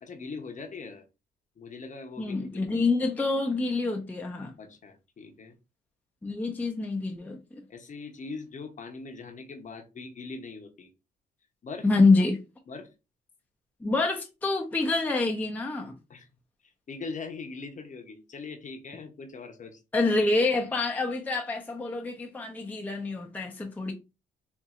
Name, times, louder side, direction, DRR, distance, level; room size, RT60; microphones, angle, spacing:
voice 1, 0.0-1.0 1.6-2.7 4.6-5.6 7.7-10.9 11.6-11.9 12.7-12.9 16.1-16.3 16.6-19.8, left 4 dB, 40° left, 0.8 m, -41 dB
voice 2, 2.2-4.5 6.2-7.4 11.8-12.4 13.8-16.0 19.9-23.9, left 3 dB, 10° left, 0.5 m, -26 dB
4.0 x 2.6 x 2.4 m
cardioid pair, 90°, 20 cm